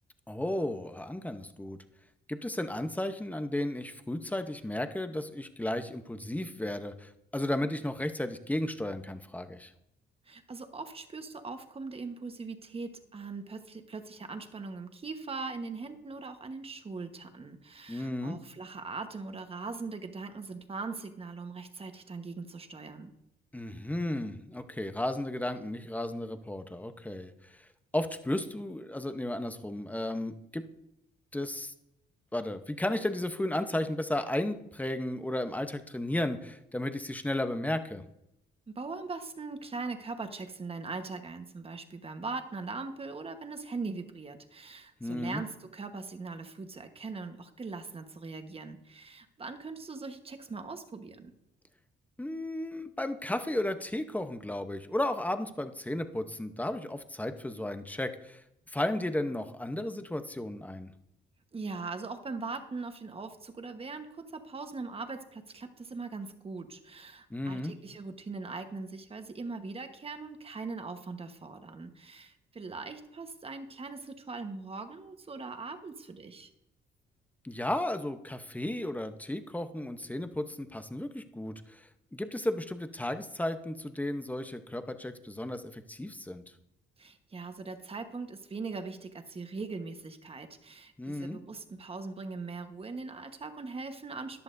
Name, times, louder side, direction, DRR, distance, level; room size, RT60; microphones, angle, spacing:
voice 1, 0.3-1.8 2.3-9.7 17.9-18.4 23.5-27.7 27.9-30.6 31.3-31.7 32.3-38.0 45.0-45.4 52.2-60.9 67.3-67.7 77.4-81.8 82.1-86.4 91.0-91.4, left 1 dB, 10° left, 8 dB, 0.9 m, -34 dB
voice 2, 10.3-23.1 38.7-51.3 61.5-76.5 87.0-94.4, right 4 dB, 30° right, 7 dB, 1.3 m, -40 dB
14.0 x 10.5 x 2.7 m, 0.84 s
cardioid pair, 90°, 20 cm